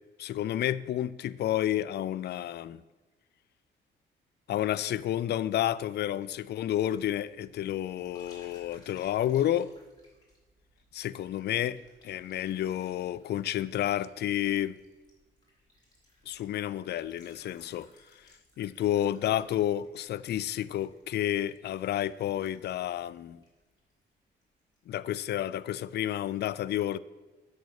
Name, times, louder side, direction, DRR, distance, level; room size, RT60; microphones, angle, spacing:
voice 1, 0.2-2.8 4.5-9.7 11.0-14.8 16.3-17.9 18.6-23.4 24.9-27.0, left 12 dB, 55° left, 0.4 m, -30 dB
sound 1, 5.9-24.1 24.4-24.8, left 1 dB, 20° left, 3.8 m, -63 dB
8.2 x 6.6 x 6.4 m
cardioid pair, 90°, 20 cm